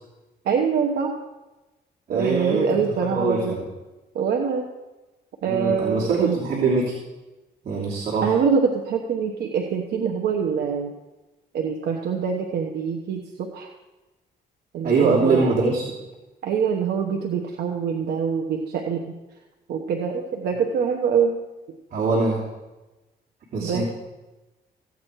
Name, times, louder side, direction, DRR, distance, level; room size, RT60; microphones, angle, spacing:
voice 1, 0.4-1.1 2.1-3.6 4.1-4.6 5.4-6.4 8.2-10.9 11.5-13.7 14.7-15.7 16.4-19.0 19.7-21.3 23.6-23.8, right 6 dB, 90° right, 1 dB, 1.2 m, -24 dB
voice 2, 2.1-2.8 3.1-3.6 5.5-6.9 7.6-8.3 14.8-15.9 21.9-22.4 23.5-23.9, right 3 dB, 55° right, -5 dB, 2.8 m, -23 dB
16.0 x 8.4 x 4.7 m, 1.1 s
cardioid pair, 105°, 17 cm